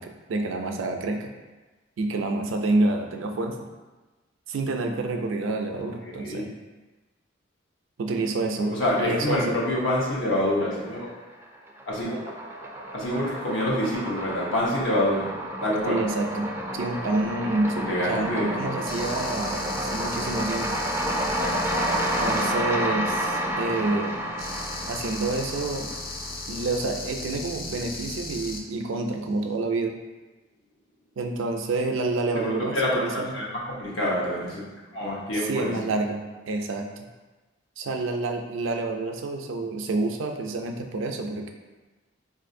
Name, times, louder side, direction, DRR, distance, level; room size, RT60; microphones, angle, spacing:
voice 1, 0.0-1.3 2.0-3.7 4.5-6.5 8.0-9.6 15.9-20.8 22.2-24.3 24.9-25.9 26.5-29.9 31.2-33.3 35.3-37.1 37.8-41.5, right 2 dB, 80° right, 4 dB, 0.4 m, -28 dB
voice 2, 6.2-6.5 8.6-11.1 11.9-12.2 12.9-15.3 15.6-16.0 17.8-18.5 32.3-34.7 34.9-35.7, left 1 dB, 80° left, -4 dB, 0.9 m, -26 dB
sound 1, 10.4-11.1 11.4-26.6, equal, 10° right, 0.3 m, -30 dB
sound 2, 18.8-22.5 24.4-28.6, left 2 dB, 50° left, 0.5 m, -36 dB
4.1 x 2.5 x 2.6 m, 1.2 s
head